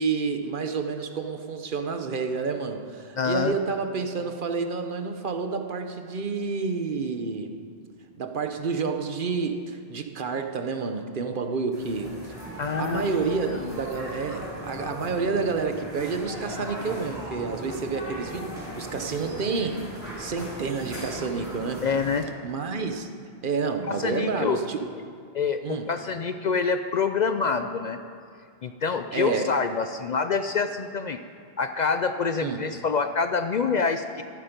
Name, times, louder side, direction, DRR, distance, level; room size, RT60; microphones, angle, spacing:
voice 1, 0.0-7.6 8.2-12.4 12.8-19.9 20.2-21.9 22.4-23.1 23.4-24.9 25.6-25.9 29.1-29.5 32.4-32.6, right 4 dB, 55° right, 6 dB, 1.0 m, -29 dB
voice 2, 3.2-3.5 12.6-13.2 13.5-13.7 21.8-22.3 23.9-24.6 25.3-28.0 28.6-31.2 31.6-34.2, left 5 dB, 55° left, 8 dB, 0.5 m, -26 dB
sound 1, 11.7-22.2, equal, 75° right, 4.7 m, -38 dB
13.0 x 11.5 x 5.2 m, 2.3 s
omnidirectional pair, 1.1 m